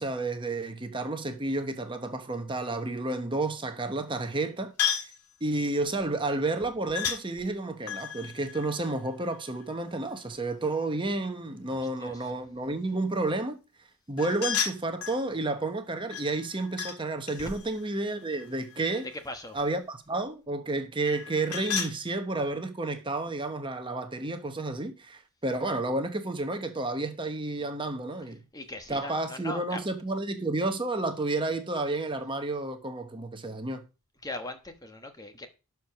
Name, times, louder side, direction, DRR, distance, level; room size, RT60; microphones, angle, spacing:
voice 1, 0.0-4.7 5.0-5.1 5.4-13.6 14.1-19.1 19.5-28.4 28.9-33.8, right 2 dB, 20° right, 1.1 m, -31 dB
sound 1, 4.8-5.2 6.9-7.2 7.8-9.6 14.2-15.2 16.1-17.0 17.3-19.2 21.0-22.0, left 7 dB, 85° left, 1.9 m, -33 dB
voice 2, 11.7-12.1 19.2-19.6 28.5-29.8 34.2-35.5, left 2 dB, 15° left, 1.2 m, -39 dB
12.0 x 4.7 x 5.9 m
head